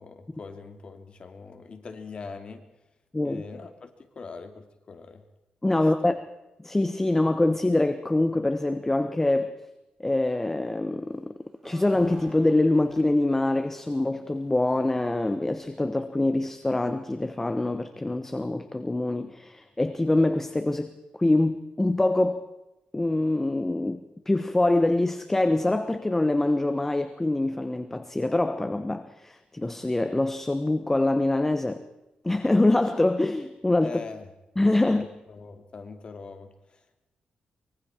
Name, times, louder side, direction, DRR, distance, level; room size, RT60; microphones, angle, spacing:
voice 1, 0.0-2.6 3.2-5.2 5.7-6.1 33.8-34.3 34.9-37.0, left 4 dB, 40° left, 6 dB, 2.9 m, -42 dB
voice 2, 5.6-6.1 6.6-9.5 10.0-11.3 11.6-20.9 21.2-22.4 22.9-24.0 24.3-31.8 32.2-34.0 34.6-35.0, left 2 dB, 15° left, 9 dB, 1.1 m, -24 dB
sound 1, 11.5-13.5 13.8-13.9 14.3-14.4 15.3-15.4 15.8-15.9, right 1 dB, 20° right, 5.8 m, -47 dB
24.5 x 24.0 x 4.5 m, 0.97 s
wide cardioid pair, 135°, 3 cm